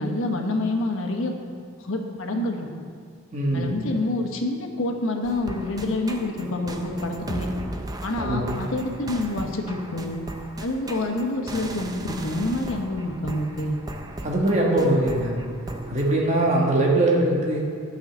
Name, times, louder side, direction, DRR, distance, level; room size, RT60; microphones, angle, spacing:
voice 1, 0.0-1.3 1.8-2.7 3.5-7.5 8.0-10.2 10.6-13.8, left 2 dB, 85° left, 3 dB, 1.2 m, -27 dB
voice 2, 3.3-3.7 8.2-8.6 14.2-15.4 15.9-17.6, right 1 dB, 35° right, -2 dB, 1.6 m, -21 dB
sound 1, 5.2-16.2, right 1 dB, 20° right, 0.6 m, -37 dB
9.9 x 5.7 x 7.2 m, 2.3 s
head